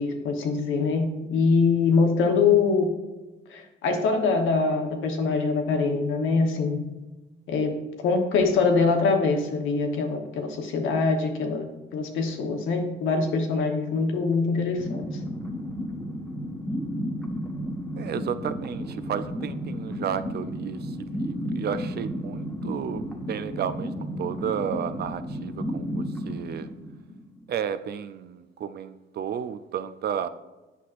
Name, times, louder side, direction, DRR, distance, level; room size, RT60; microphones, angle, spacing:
voice 1, 0.0-2.9 3.5-6.8 7.5-11.6 11.9-15.1, left 4 dB, 85° left, 1.0 m, -24 dB
sound 1, 14.8-27.5, equal, ahead, 1.2 m, -33 dB
voice 2, 18.0-26.7 27.5-30.3, right 8 dB, 55° right, 0.4 m, -32 dB
8.2 x 5.8 x 2.5 m
cardioid pair, 90°, 20 cm